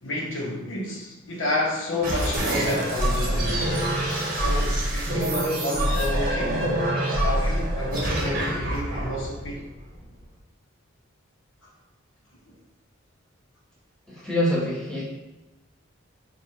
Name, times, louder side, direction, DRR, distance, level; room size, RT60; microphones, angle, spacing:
voice 1, 0.0-3.7 4.3-6.7 7.2-9.6 11.6-11.7 12.5-12.6, left 1 dB, 75° left, -3 dB, 1.0 m, -30 dB
sound 1, 2.0-10.2, right 1 dB, 45° right, 0.8 m, -25 dB
voice 2, 14.1-15.0, left 1 dB, 5° left, -8 dB, 0.9 m, -25 dB
4.8 x 2.5 x 2.8 m, 1.0 s
head